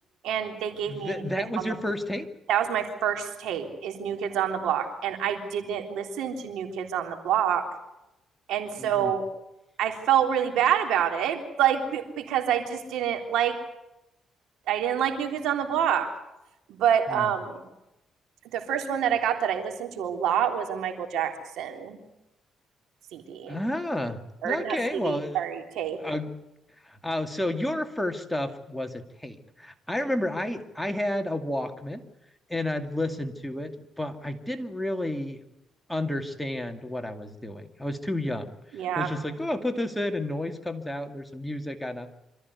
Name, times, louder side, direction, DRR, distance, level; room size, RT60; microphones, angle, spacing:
voice 1, 0.2-1.7 2.5-7.6 8.5-9.2 9.8-13.6 14.7-16.1 16.7-17.6 18.5-22.0 23.1-23.6 24.4-26.0 38.7-39.1, right 9 dB, 85° right, 5 dB, 3.5 m, -27 dB
voice 2, 0.9-2.3 8.8-9.1 17.1-17.3 23.5-25.4 26.0-26.4 26.8-32.0 32.5-35.4 35.9-42.1, left 1 dB, 5° left, 6 dB, 2.3 m, -31 dB
26.0 x 14.5 x 9.6 m, 0.91 s
cardioid pair, 90°, 0 cm